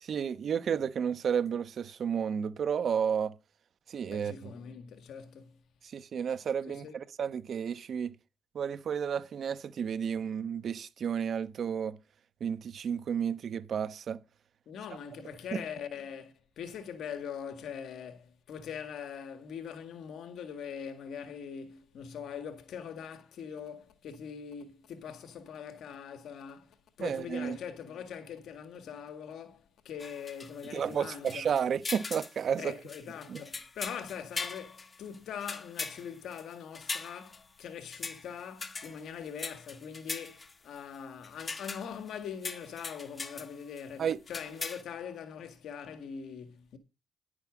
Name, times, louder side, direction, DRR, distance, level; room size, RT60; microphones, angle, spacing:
voice 1, 0.0-3.3 3.9-4.5 5.8-8.1 8.5-12.0 12.4-14.2 15.5-15.6 27.0-27.6 30.7-32.8 33.3-33.4 44.0-44.2, right 7 dB, 55° right, 1.1 m, -32 dB
voice 2, 4.1-5.6 6.7-6.9 14.7-31.5 32.6-46.8, left 7 dB, 70° left, 1.8 m, -42 dB
sound 1, 30.0-30.9 31.3-32.4 32.9-37.6 37.9-38.3 38.6-40.8 41.2-42.1 42.4-43.5 43.8-43.9 44.3-44.8, left 4 dB, 30° left, 1.5 m, -40 dB
10.5 x 10.0 x 5.1 m
cardioid pair, 90°, 0 cm